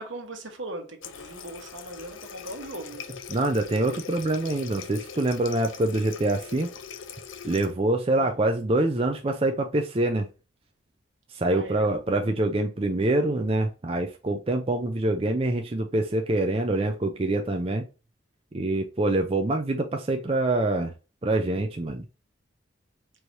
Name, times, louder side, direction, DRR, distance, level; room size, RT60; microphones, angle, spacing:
voice 1, 0.0-3.0 8.2-8.4 11.5-11.9, right 2 dB, 80° right, 1.2 m, -39 dB
Water tap faucet, 1.0-7.7, left 7 dB, 90° left, 0.6 m, -42 dB
voice 2, 3.3-6.7 7.4-10.3 11.4-17.8 18.5-20.9 21.2-22.0, right 2 dB, 30° right, 0.5 m, -25 dB
4.6 x 3.3 x 2.7 m
head